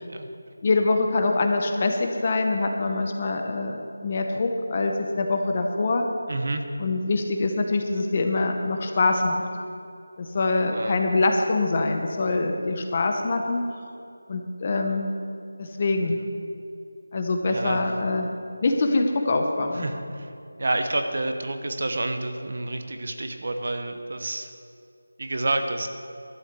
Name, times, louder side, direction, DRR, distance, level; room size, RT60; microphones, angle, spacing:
voice 1, 0.6-6.0 6.8-9.4 10.2-13.6 14.3-15.1 15.6-16.2 17.1-18.3 18.6-19.9, left 3 dB, 25° left, 4 dB, 0.8 m, -24 dB
voice 2, 6.3-6.6 10.7-11.0 16.1-16.2 17.5-17.9 19.7-20.3 20.6-24.5 25.2-25.9, right 2 dB, 50° right, 7 dB, 1.0 m, -29 dB
12.0 x 6.4 x 8.3 m, 2.5 s
figure-of-eight pair, 175°, 0 cm